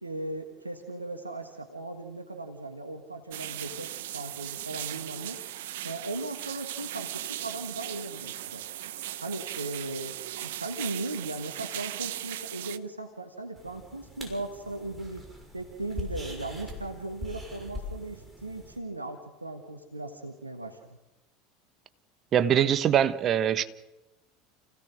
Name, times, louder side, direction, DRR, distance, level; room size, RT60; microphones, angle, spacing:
voice 1, 0.0-5.6 5.8-8.9 9.2-15.3 15.5-20.8, right 2 dB, 90° right, 5 dB, 1.6 m, -38 dB
sound 1, 3.3-12.8, right 13 dB, 65° right, 0.9 m, -38 dB
sound 2, 13.6-18.8, left 1 dB, 15° right, 6.4 m, -42 dB
voice 2, 22.3-23.6, right 9 dB, 40° right, 13 dB, 1.3 m, -23 dB
29.5 x 17.0 x 6.4 m, 1.0 s
figure-of-eight pair, 75°, 0 cm